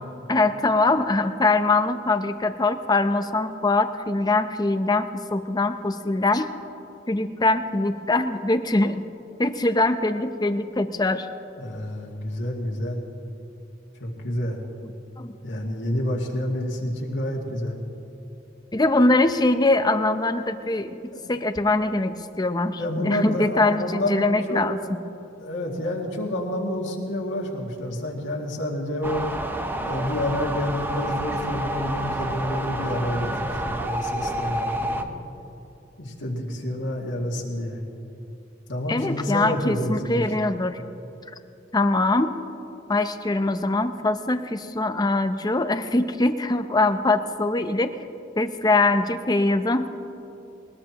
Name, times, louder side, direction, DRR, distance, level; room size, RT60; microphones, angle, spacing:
voice 1, 0.3-6.5 7.1-9.0 9.4-11.3 15.2-15.3 18.7-21.0 21.3-25.0 38.9-40.8 41.7-42.4 42.9-47.9 48.4-49.9, left 2 dB, 20° left, 9 dB, 0.7 m, -22 dB
voice 2, 11.6-13.0 14.0-14.6 15.4-17.7 21.1-21.3 22.8-24.6 25.4-29.2 29.8-35.1 36.0-37.8 38.7-40.2, left 1 dB, 80° left, -1 dB, 2.3 m, -29 dB
sound 1, 29.0-35.0, right 1 dB, 10° right, 0.8 m, -29 dB
21.5 x 20.0 x 3.0 m, 2.8 s
head